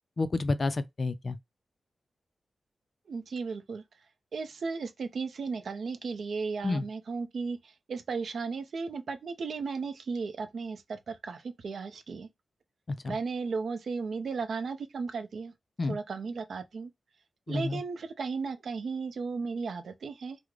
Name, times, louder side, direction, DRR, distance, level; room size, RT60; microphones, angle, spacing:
voice 1, 0.2-1.4 6.6-6.8 13.0-13.2 15.8-16.0 17.5-17.8, left 3 dB, 35° left, 0.3 m, -29 dB
voice 2, 3.1-3.8 4.3-12.3 13.0-15.5 15.9-16.9 17.5-20.4, right 4 dB, 65° right, 0.5 m, -35 dB
3.6 x 2.0 x 3.1 m
wide cardioid pair, 150°, 0 cm